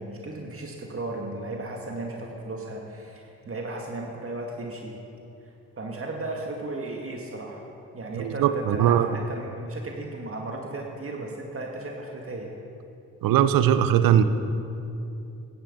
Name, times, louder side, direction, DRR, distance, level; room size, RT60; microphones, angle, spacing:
voice 1, 0.0-5.0 5.4-7.6 7.9-12.5, right 2 dB, 40° right, 0 dB, 2.0 m, -35 dB
voice 2, 8.2-9.1 13.2-14.2, right 10 dB, 75° right, 12 dB, 0.8 m, -20 dB
15.0 x 10.5 x 5.5 m, 2.8 s
supercardioid pair, 50°, 34 cm